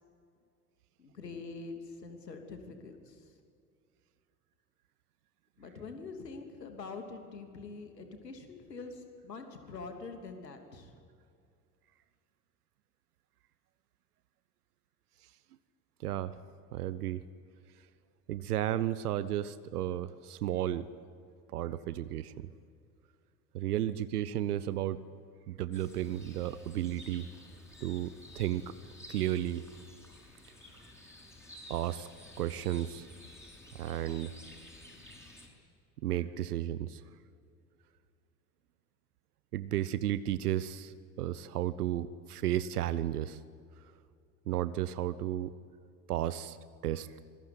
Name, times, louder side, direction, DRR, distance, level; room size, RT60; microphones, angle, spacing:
voice 1, 1.0-3.2 5.6-10.9, left 4 dB, 80° left, 5 dB, 3.1 m, -45 dB
voice 2, 16.0-16.4 16.7-17.2 18.3-20.9 21.5-22.5 23.5-25.0 25.5-27.3 27.8-28.7 29.1-29.7 31.7-32.1 32.4-33.1 33.7-34.3 36.0-37.0 39.5-43.4 44.5-45.5 46.1-46.6 46.8-47.2, right 12 dB, 65° right, 15 dB, 1.0 m, -33 dB
sound 1, 25.7-35.5, left 1 dB, 5° left, 7.3 m, -53 dB
26.5 x 21.5 x 9.5 m, 2.4 s
figure-of-eight pair, 70°, 49 cm